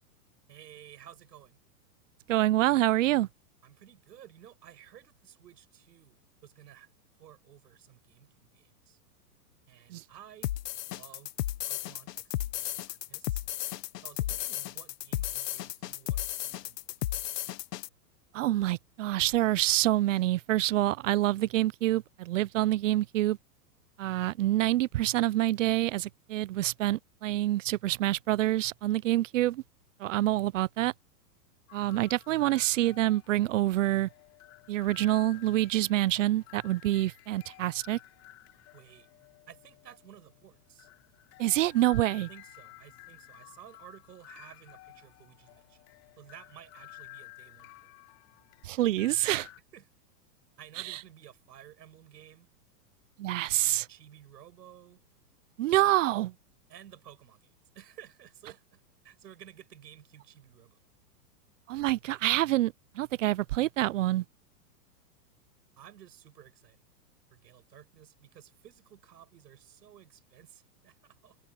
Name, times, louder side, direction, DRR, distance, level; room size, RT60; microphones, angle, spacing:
voice 1, 0.5-1.6 3.6-6.9 7.2-9.0 9.7-10.5 10.9-11.3 11.6-13.5 14.0-17.6 38.7-39.1 39.5-40.9 42.1-45.8 46.2-47.9 49.7-49.9 50.6-52.5 53.9-55.0 56.7-60.8 65.8-66.8 67.3-71.4, right 10 dB, 85° right, 7.8 m, -54 dB
voice 2, 2.3-3.3 9.9-10.0 18.3-23.4 24.0-29.6 30.0-30.9 31.7-34.1 34.7-38.0 41.4-42.3 48.6-49.5 50.8-51.0 53.2-53.9 55.6-56.3 61.7-64.2, right 15 dB, 50° right, 0.5 m, -27 dB
sound 1, 10.4-17.9, left 14 dB, 80° left, 1.0 m, -34 dB
sound 2, 31.7-49.6, left 20 dB, 30° left, 3.9 m, -53 dB
supercardioid pair, 160°, 48 cm